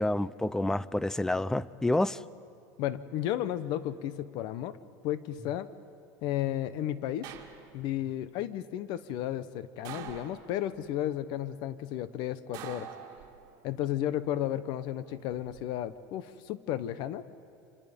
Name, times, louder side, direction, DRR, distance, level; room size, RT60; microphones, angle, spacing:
voice 1, 0.0-2.2, left 1 dB, 5° left, 0.5 m, -28 dB
voice 2, 2.8-4.8 5.0-5.7 6.2-7.3 7.7-12.9 13.6-17.2, left 12 dB, 60° left, 1.1 m, -33 dB
sound 1, 7.2-8.0 9.8-10.8 12.5-13.7 15.1-15.6, right 10 dB, 50° right, 2.5 m, -45 dB
28.5 x 26.0 x 5.3 m
supercardioid pair, 125°, 9 cm